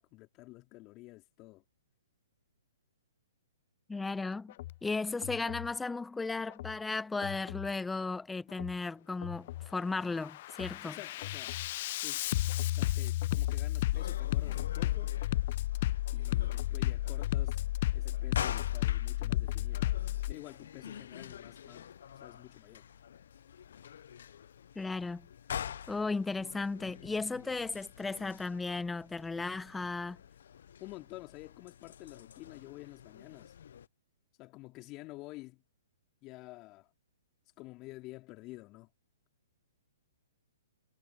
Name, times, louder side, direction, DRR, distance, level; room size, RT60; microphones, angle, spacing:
voice 1, 0.0-1.6 10.8-11.6 12.0-12.3 12.7-15.1 16.1-17.6 17.9-19.9 20.3-21.9 22.1-22.8 30.8-33.6 34.4-35.6 36.2-36.9 37.6-38.9, left 21 dB, 30° left, 2.7 m, -50 dB
voice 2, 3.9-4.5 4.8-11.0 24.7-25.3 25.9-30.2, left 3 dB, 5° left, 1.0 m, -35 dB
Bass drum, 4.5-4.7 5.2-5.7 6.5-6.7 7.2-7.7 8.5-8.7 9.2-9.7 10.1-20.3, left 15 dB, 45° left, 0.3 m, -33 dB
sound 1, 13.9-33.9, left 9 dB, 60° left, 0.8 m, -46 dB
figure-of-eight pair, 125°, 0 cm